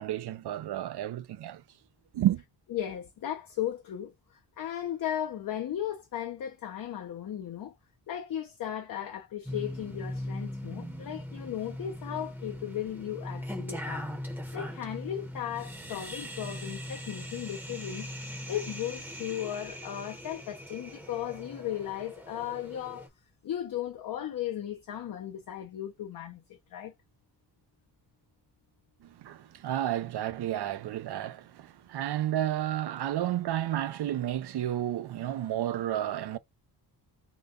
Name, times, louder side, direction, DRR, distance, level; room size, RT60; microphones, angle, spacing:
voice 1, 0.0-1.6 2.1-2.4 29.0-36.4, right 12 dB, 70° right, 0.6 m, -31 dB
voice 2, 2.7-7.7 8.1-14.1 14.5-23.1 23.4-26.9, left 11 dB, 55° left, 0.6 m, -36 dB
sound 1, 9.5-23.1, left 1 dB, 5° right, 0.8 m, -40 dB
3.9 x 2.2 x 3.6 m
wide cardioid pair, 170°, 41 cm